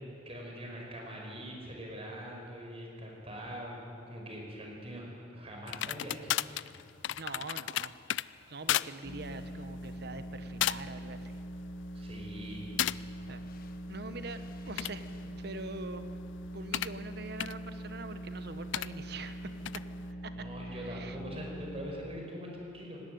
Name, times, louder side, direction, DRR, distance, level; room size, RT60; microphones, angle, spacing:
voice 1, 0.3-5.1 5.3-6.6 11.9-12.8 20.3-23.0, equal, 35° right, -1 dB, 5.2 m, -43 dB
sound 1, 5.7-8.3 8.7-8.9 9.3-9.5 10.2-10.3 10.6-11.0 11.4-11.9 12.8-13.0 14.5-17.0 17.4-17.5 18.7-18.9 19.6-19.8, left 12 dB, 85° left, 0.4 m, -34 dB
voice 2, 7.2-8.0 8.5-11.4 13.3-13.4 13.9-16.1 16.5-19.8 20.2-21.2, right 3 dB, 65° right, 10 dB, 1.2 m, -44 dB
sound 2, 9.0-21.9, right 1 dB, 55° left, 1.2 m, -43 dB
18.0 x 18.0 x 9.4 m, 2.8 s
head